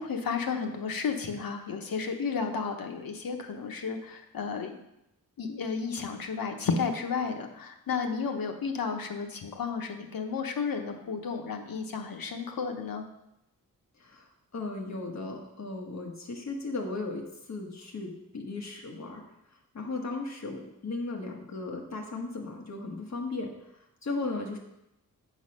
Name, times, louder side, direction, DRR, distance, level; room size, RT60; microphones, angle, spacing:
voice 1, 0.0-4.8 5.4-13.0, left 5 dB, 85° left, 4 dB, 1.0 m, -32 dB
voice 2, 14.5-19.2 19.7-23.5 24.0-24.6, left 3 dB, 50° left, 1 dB, 1.4 m, -36 dB
8.1 x 4.0 x 6.4 m, 0.84 s
wide cardioid pair, 155°, 34 cm